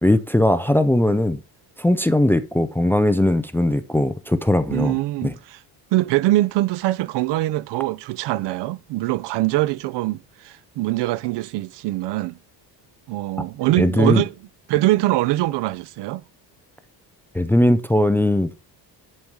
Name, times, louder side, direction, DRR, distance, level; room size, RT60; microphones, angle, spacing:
voice 1, 0.0-1.4 1.8-5.0 5.2-5.3 13.8-14.2 17.3-18.5, left 1 dB, 5° left, 0.4 m, -19 dB
voice 2, 4.7-5.6 5.9-12.4 13.1-14.3 14.7-16.2, right 17 dB, 70° right, 0.6 m, -23 dB
10.5 x 4.6 x 5.4 m
cardioid pair, 155°, 43 cm